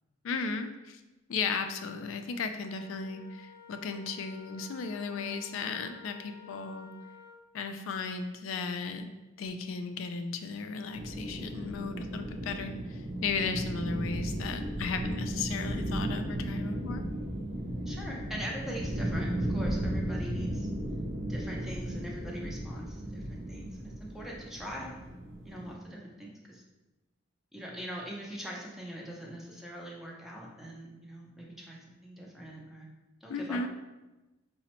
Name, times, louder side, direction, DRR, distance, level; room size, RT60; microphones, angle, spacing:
voice 1, 0.2-1.0 1.3-6.9 7.5-9.1 9.4-17.1 33.3-33.7, left 4 dB, 70° left, 7 dB, 0.3 m, -35 dB
Wind instrument woodwind instrument, 2.6-7.5, left 7 dB, 85° right, 0.9 m, -53 dB
sound 1, 10.9-25.7, right 1 dB, 65° right, 0.5 m, -35 dB
voice 2, 17.9-20.7 21.3-24.9 25.4-26.6 27.5-32.9 33.2-33.7, equal, ahead, -3 dB, 0.4 m, -42 dB
4.9 x 2.0 x 2.9 m, 1.1 s
head